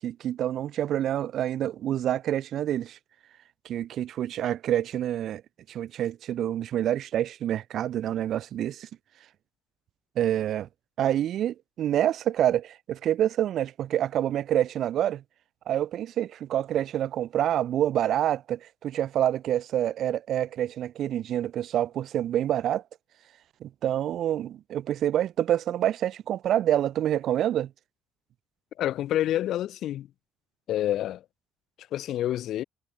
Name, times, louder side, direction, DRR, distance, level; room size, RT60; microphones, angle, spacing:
voice 1, 0.0-3.0 3.6-5.4 5.7-8.9 10.2-10.7 11.0-15.2 15.7-22.8 23.6-27.7, right 11 dB, 55° right, 6.2 m, -27 dB
voice 2, 28.8-30.1 30.7-31.2 31.9-32.6, left 12 dB, 60° left, 6.2 m, -28 dB
cardioid pair, 155°, 0 cm